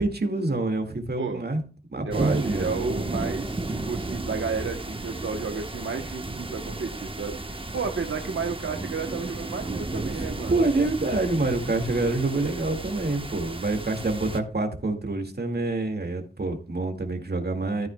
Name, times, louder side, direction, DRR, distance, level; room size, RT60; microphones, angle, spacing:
voice 1, 0.0-1.6 1.9-2.8 10.2-17.9, right 2 dB, 55° right, 5 dB, 2.1 m, -27 dB
voice 2, 2.0-10.7, right 5 dB, 90° right, 4 dB, 1.0 m, -32 dB
sound 1, 2.1-14.4, right 2 dB, 25° right, 1.1 m, -33 dB
13.5 x 9.1 x 2.3 m, 0.37 s
wide cardioid pair, 70°, 20 cm